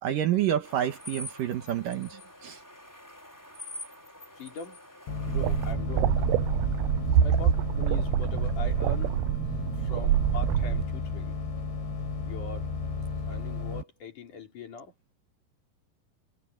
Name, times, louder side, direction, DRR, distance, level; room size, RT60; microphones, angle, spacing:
voice 1, 0.0-2.6 7.2-7.3, right 9 dB, 65° right, 2.4 m, -27 dB
sound 1, 0.6-5.7, left 2 dB, 5° left, 4.5 m, -45 dB
voice 2, 4.4-4.8 5.2-6.3 7.2-9.2 9.7-11.4 12.2-12.7 13.3-14.9, left 4 dB, 50° left, 5.3 m, -41 dB
sound 2, 5.1-13.8, left 5 dB, 85° left, 7.4 m, -33 dB
sound 3, 5.3-10.8, right 15 dB, 85° right, 2.8 m, -28 dB
omnidirectional pair, 5.0 m